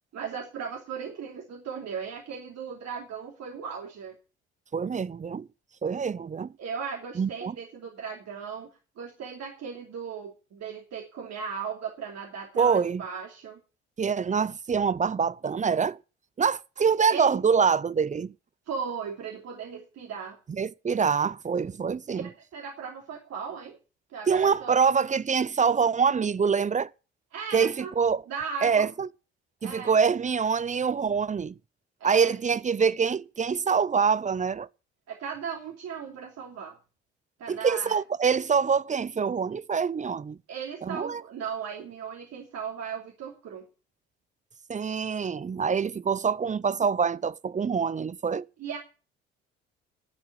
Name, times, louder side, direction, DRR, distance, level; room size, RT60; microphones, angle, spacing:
voice 1, 0.1-4.1 6.6-8.7 9.0-13.6 17.1-17.4 18.7-20.4 22.1-23.8 24.1-24.8 27.3-27.9 28.3-28.9 29.6-29.9 32.0-32.4 35.1-36.8 37.4-38.0 40.5-43.7 48.6-48.8, right 6 dB, 55° right, 2.8 m, -37 dB
voice 2, 4.7-5.5 5.8-6.5 7.2-7.5 12.6-13.0 14.0-16.0 16.4-18.3 20.5-22.3 24.3-26.9 27.5-28.2 28.6-29.1 29.6-31.5 32.0-34.7 37.5-40.4 40.8-41.2 44.7-48.5, right 6 dB, 25° right, 0.6 m, -25 dB
11.5 x 7.7 x 8.6 m
hypercardioid pair, 50°, 31 cm